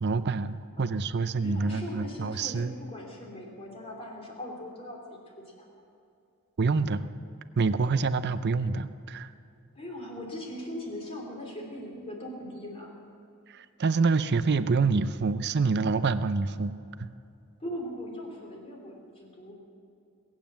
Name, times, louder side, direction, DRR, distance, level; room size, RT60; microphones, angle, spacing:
voice 1, 0.0-2.8 6.6-7.0 7.6-9.3 13.5-16.7 17.0-17.1, right 4 dB, 50° right, 13 dB, 0.5 m, -27 dB
voice 2, 1.4-5.2 5.6-5.7 9.8-12.9 17.6-19.5, left 1 dB, 25° left, -1 dB, 3.1 m, -40 dB
21.5 x 9.0 x 7.5 m, 2.6 s
head